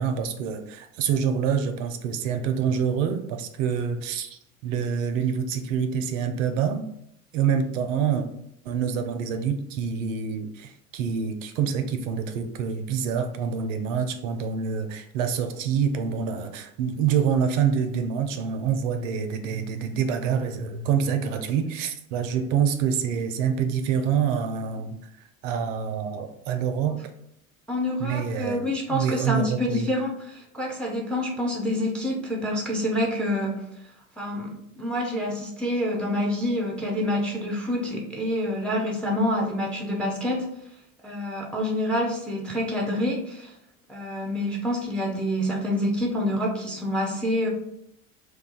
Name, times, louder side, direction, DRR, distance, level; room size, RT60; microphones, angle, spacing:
voice 1, 0.0-6.8 7.3-8.3 8.7-25.0 25.4-27.0 28.0-29.9, right 7 dB, 60° right, 7 dB, 0.5 m, -26 dB
voice 2, 27.7-33.6 34.2-40.5 41.0-43.5 43.9-47.5, left 1 dB, ahead, 0 dB, 0.4 m, -27 dB
2.3 x 2.3 x 3.7 m, 0.75 s
figure-of-eight pair, 70°, 42 cm